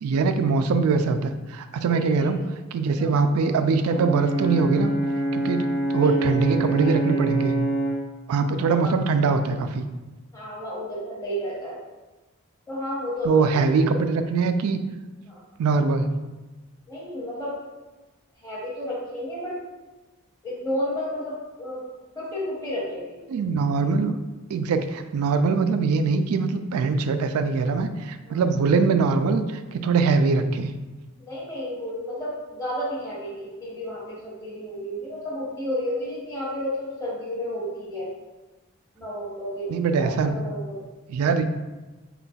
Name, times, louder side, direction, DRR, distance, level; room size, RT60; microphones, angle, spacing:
voice 1, 0.0-2.4 2.7-4.9 5.3-5.7 5.9-7.6 8.3-9.9 13.2-14.8 15.6-16.2 23.3-24.2 24.5-29.4 29.7-30.7 39.7-40.3 41.1-41.4, right 4 dB, 80° right, 9 dB, 0.3 m, -22 dB
voice 2, 1.9-2.4 3.0-3.2 6.0-6.3 6.8-7.2 8.6-9.0 10.3-11.8 12.7-14.1 15.3-15.4 16.9-17.5 18.4-19.6 20.4-21.8 22.1-23.2 28.2-28.4 31.2-38.1 39.0-40.9, equal, 15° left, -7 dB, 0.8 m, -32 dB
Brass instrument, 3.8-8.1, right 2 dB, 85° left, 1.2 m, -26 dB
4.0 x 3.8 x 2.3 m, 1.2 s
head